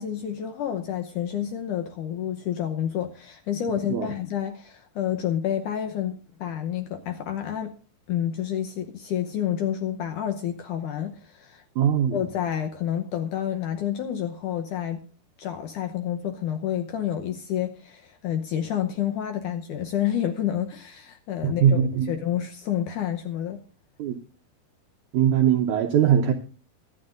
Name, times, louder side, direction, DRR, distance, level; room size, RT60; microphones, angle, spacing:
voice 1, 0.0-7.7 8.1-11.6 12.1-15.0 15.4-23.6, left 10 dB, 75° left, 2.0 m, -29 dB
voice 2, 11.8-12.2 21.4-22.1 24.0-24.2 25.1-26.3, right 9 dB, 80° right, 1.8 m, -21 dB
23.5 x 9.4 x 2.5 m
omnidirectional pair, 4.6 m